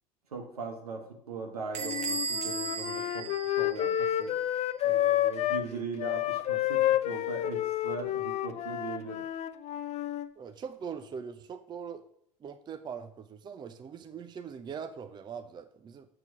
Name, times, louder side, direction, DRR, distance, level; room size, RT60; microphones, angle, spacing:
voice 1, 0.3-4.3 4.8-9.3, right 4 dB, 80° right, 3 dB, 1.4 m, -40 dB
Bell / Door, 1.7-4.2, right 4 dB, 40° right, 1.2 m, -36 dB
Wind instrument woodwind instrument, 1.8-5.7 6.0-10.3, left 13 dB, 35° left, 0.4 m, -30 dB
voice 2, 10.4-12.0 12.4-16.1, right 6 dB, 25° right, 9 dB, 0.6 m, -41 dB
6.8 x 4.7 x 6.0 m, 0.68 s
figure-of-eight pair, 75°, 19 cm